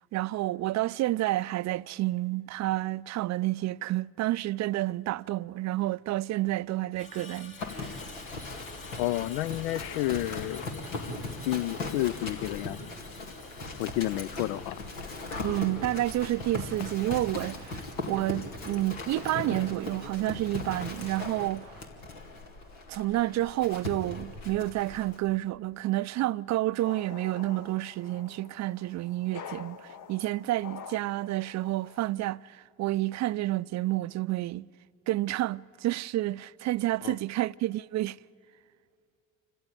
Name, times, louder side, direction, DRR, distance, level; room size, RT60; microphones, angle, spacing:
voice 1, 0.1-8.1 15.4-21.8 22.9-34.7 35.1-38.2, right 16 dB, 45° right, 0.4 m, -30 dB
Screech, 6.9-17.3 17.6-17.9, left 4 dB, 35° left, 3.6 m, -51 dB
Livestock farm animals working animals, 7.6-25.2, left 2 dB, 90° left, 2.2 m, -39 dB
voice 2, 9.0-10.8 11.4-12.9 13.8-14.8 37.0-37.2, left 16 dB, 70° left, 0.5 m, -31 dB
sound 1, 26.8-32.1, left 7 dB, 55° left, 1.1 m, -46 dB
28.5 x 15.5 x 9.0 m
hypercardioid pair, 65°, 38 cm